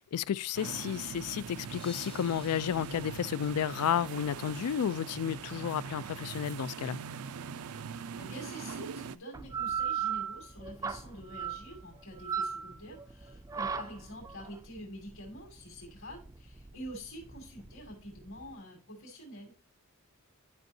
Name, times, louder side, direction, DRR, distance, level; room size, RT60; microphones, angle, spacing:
voice 1, 0.0-7.0, left 9 dB, 85° left, 0.3 m, -32 dB
sound 1, 0.5-9.2, right 6 dB, 85° right, 0.4 m, -42 dB
sound 2, 1.8-4.5, left 6 dB, 25° left, 0.8 m, -54 dB
voice 2, 7.8-19.5, equal, 65° left, 2.4 m, -47 dB
sound 3, 9.3-18.5, right 7 dB, 15° right, 0.3 m, -37 dB
10.5 x 5.4 x 2.7 m
head